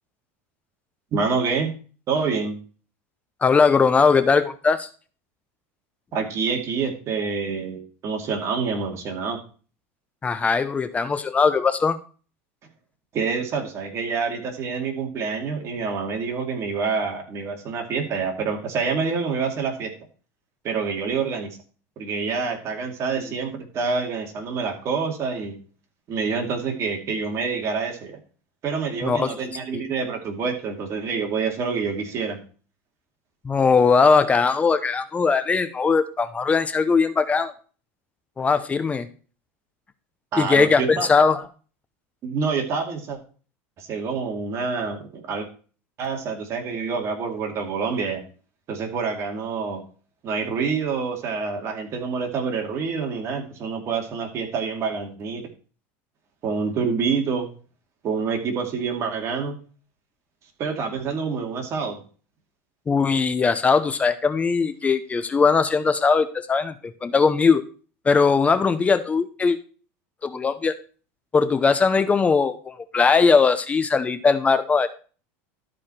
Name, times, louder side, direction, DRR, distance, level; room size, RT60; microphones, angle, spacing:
voice 1, 1.1-1.7 2.1-2.6 6.1-9.4 13.1-19.9 20.6-21.6 22.0-25.6 26.1-28.2 28.6-32.4 40.3-41.1 42.2-43.2 43.8-45.5 46.0-48.2 48.7-49.8 50.2-55.5 56.4-57.5 58.0-59.6 60.6-62.0, right 5 dB, 40° right, 3 dB, 2.3 m, -27 dB
voice 2, 3.4-4.9 10.2-12.0 29.0-29.3 29.7-29.8 33.4-37.5 38.4-39.1 40.4-41.4 62.9-66.7 67.0-67.6 68.1-69.6 70.2-70.7 71.3-74.9, left 5 dB, 20° left, 12 dB, 0.7 m, -20 dB
13.0 x 4.9 x 4.3 m, 0.38 s
supercardioid pair, 130°, 7 cm